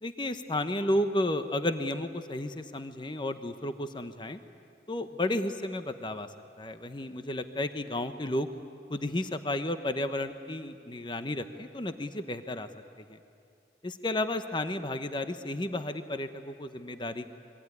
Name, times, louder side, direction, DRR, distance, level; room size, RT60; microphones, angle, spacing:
voice 1, 0.0-4.4 4.9-6.3 6.6-8.5 8.9-12.7 13.0-13.2 13.8-17.3, left 1 dB, 25° left, 9 dB, 0.9 m, -32 dB
25.0 x 23.0 x 9.7 m, 2.5 s
head